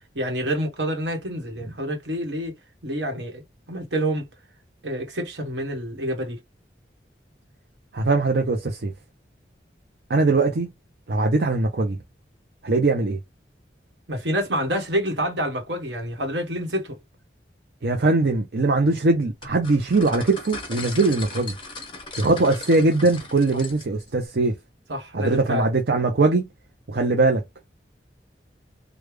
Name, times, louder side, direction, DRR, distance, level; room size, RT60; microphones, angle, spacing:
voice 1, 0.1-2.5 2.8-3.4 3.7-4.2 4.8-6.4 14.1-17.0 24.9-25.7, equal, 80° right, 1.3 m, -27 dB
voice 2, 7.9-8.9 10.1-10.7 11.1-12.0 12.6-13.2 17.8-21.5 22.2-24.5 25.1-26.5 26.9-27.4, right 3 dB, 65° right, 0.6 m, -21 dB
sound 1, 19.4-24.1, left 3 dB, 30° left, 1.0 m, -38 dB
3.3 x 2.3 x 3.4 m
head